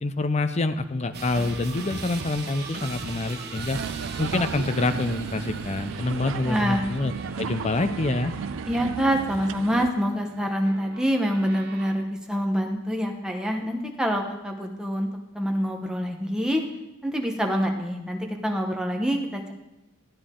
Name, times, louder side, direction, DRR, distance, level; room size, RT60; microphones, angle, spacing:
voice 1, 0.0-3.8 4.2-7.1 7.4-8.3, left 2 dB, 30° left, 10 dB, 0.5 m, -26 dB
sound 1, 1.1-11.9, right 3 dB, 50° right, 0.9 m, -39 dB
sound 2, 3.7-9.9, right 6 dB, 70° right, 0.4 m, -34 dB
voice 2, 6.2-6.8 8.7-15.1 15.3-16.6 17.0-19.5, equal, 5° right, 2 dB, 0.9 m, -26 dB
12.5 x 8.7 x 3.7 m, 1.0 s
head